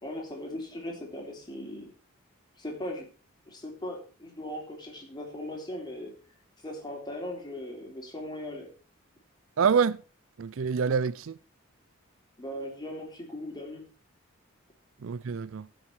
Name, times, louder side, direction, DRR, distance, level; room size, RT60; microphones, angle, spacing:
voice 1, 0.0-1.9 2.6-3.1 3.5-6.1 6.6-8.7 12.4-13.9, left 1 dB, 20° left, 3.4 m, -38 dB
voice 2, 9.6-10.0 10.4-11.4 15.0-15.7, right 6 dB, 65° right, 0.4 m, -26 dB
15.5 x 6.1 x 4.6 m
head